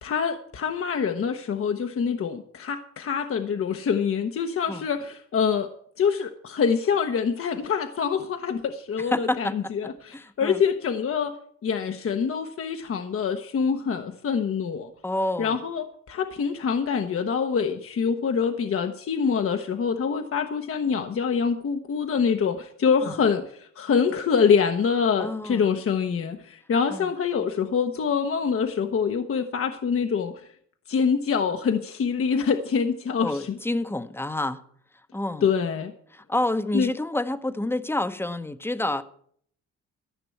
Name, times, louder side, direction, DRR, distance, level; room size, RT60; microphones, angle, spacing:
voice 1, 0.0-5.7 6.0-11.3 11.6-14.9 15.4-30.3 30.9-33.6 35.4-35.9 36.7-36.9, left 6 dB, 45° left, 7 dB, 1.0 m, -25 dB
voice 2, 9.1-9.7 10.1-10.6 15.0-15.6 23.0-23.1 25.2-25.6 26.9-27.1 33.2-34.6 35.1-35.5 36.1-39.0, left 1 dB, 10° left, 11 dB, 0.9 m, -28 dB
13.5 x 6.0 x 8.4 m, 0.63 s
cardioid pair, 90°, 30 cm